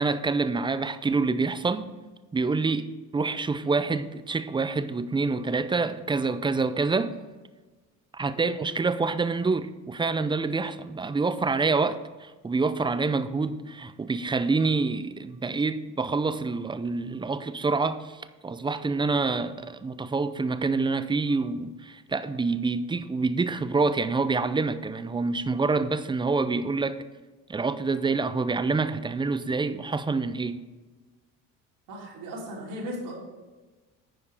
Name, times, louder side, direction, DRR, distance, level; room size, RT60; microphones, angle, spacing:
voice 1, 0.0-1.9 2.3-2.9 3.1-7.1 8.1-27.0 27.5-30.6, right 4 dB, 10° right, 0.4 m, -27 dB
voice 2, 31.9-33.1, equal, 70° right, 3.1 m, -37 dB
9.7 x 5.1 x 4.8 m
supercardioid pair, 80°, 40 cm